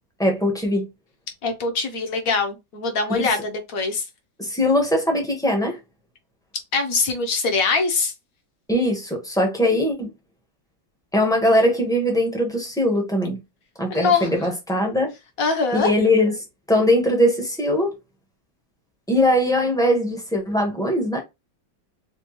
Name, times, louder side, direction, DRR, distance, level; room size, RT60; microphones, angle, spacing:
voice 1, 0.2-0.9 3.1-3.3 4.4-5.8 8.7-10.1 11.1-13.4 13.8-15.1 15.7-16.3 16.7-17.9 19.1-21.2, left 1 dB, 5° left, 0.7 m, -21 dB
voice 2, 1.4-4.0 6.7-8.1 13.9-14.3 15.4-15.9, left 4 dB, 55° left, 1.1 m, -23 dB
4.3 x 2.4 x 3.1 m
omnidirectional pair, 2.0 m